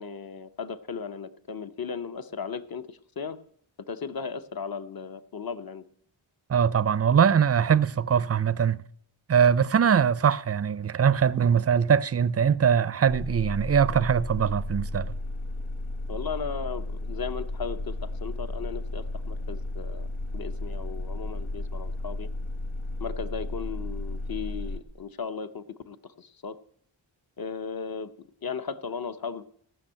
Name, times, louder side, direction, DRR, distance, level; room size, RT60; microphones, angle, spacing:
voice 1, 0.0-3.4 3.9-5.8 16.1-20.1 20.3-22.3 23.0-26.6 27.4-28.1 28.4-29.4, left 6 dB, 45° left, 0.8 m, -36 dB
voice 2, 6.5-8.8 9.3-15.2, right 7 dB, 30° right, 0.4 m, -22 dB
sound 1, 13.1-24.8, left 1 dB, 90° left, 1.8 m, -34 dB
16.0 x 6.3 x 8.7 m
wide cardioid pair, 80°, 48 cm